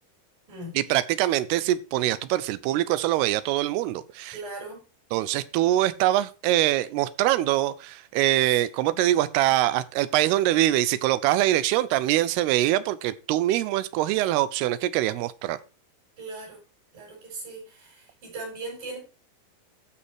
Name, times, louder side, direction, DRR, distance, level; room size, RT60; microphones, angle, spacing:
voice 1, 0.8-4.4 5.1-15.6, right 14 dB, 80° right, 17 dB, 2.6 m, -24 dB
voice 2, 4.3-4.8 8.9-9.0 16.2-16.6 16.9-19.0, right 2 dB, 55° right, -2 dB, 6.7 m, -38 dB
13.0 x 5.7 x 4.7 m, 0.33 s
omnidirectional pair, 4.7 m